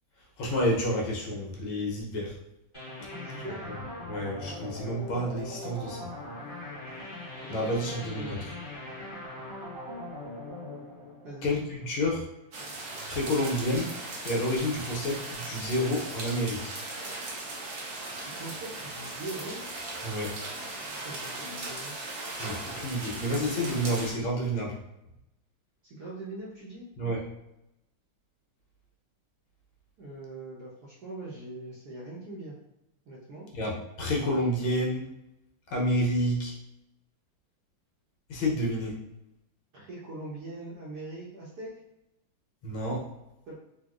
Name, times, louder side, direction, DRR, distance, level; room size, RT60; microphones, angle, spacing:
voice 1, 0.4-2.4 3.0-3.1 3.3-6.1 7.5-8.4 11.4-12.3 13.1-13.9 14.2-16.7 20.0-20.4 22.3-24.8 27.0-27.2 33.5-35.0 35.7-36.5 38.3-39.0 42.6-43.1, equal, 80° left, -2 dB, 1.6 m, -29 dB
sound 1, 2.7-12.1, left 1 dB, 15° left, 1.2 m, -41 dB
voice 2, 3.1-3.7 7.4-7.7 8.2-8.4 11.2-11.6 18.2-19.6 21.0-21.9 25.8-26.9 30.0-32.6 33.1-33.5 39.7-41.8 43.5-43.6, right 2 dB, 65° right, -5 dB, 1.0 m, -41 dB
sound 2, 12.5-24.1, right 2 dB, 85° right, 0.6 m, -38 dB
4.3 x 2.3 x 2.4 m, 0.89 s
omnidirectional pair, 2.3 m